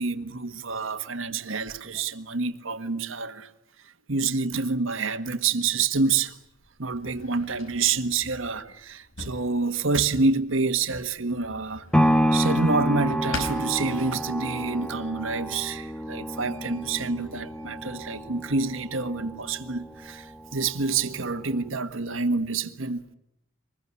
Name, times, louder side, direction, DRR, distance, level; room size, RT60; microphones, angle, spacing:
voice 1, 0.0-3.5 4.1-6.4 6.8-11.9 12.3-23.1, right 4 dB, 80° right, 1.5 m, -27 dB
Drawer open or close, 5.7-14.4, left 2 dB, 80° left, 5.0 m, -43 dB
sound 1, 11.9-20.0 20.5-20.6, equal, 5° left, 1.1 m, -28 dB
25.0 x 21.0 x 9.8 m
head